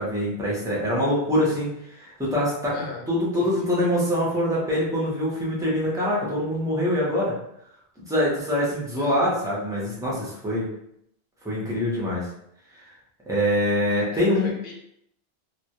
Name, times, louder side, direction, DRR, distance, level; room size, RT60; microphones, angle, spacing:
voice 1, 0.0-2.7 3.1-7.3 8.0-10.7 11.4-12.3 12.7-12.9 13.3-14.5, equal, 5° right, -6 dB, 0.5 m, -24 dB
voice 2, 2.7-3.1 3.4-3.5 9.0-9.2 14.1-14.7, left 4 dB, 65° left, -1 dB, 0.9 m, -36 dB
2.2 x 2.1 x 2.8 m, 0.76 s
omnidirectional pair, 1.1 m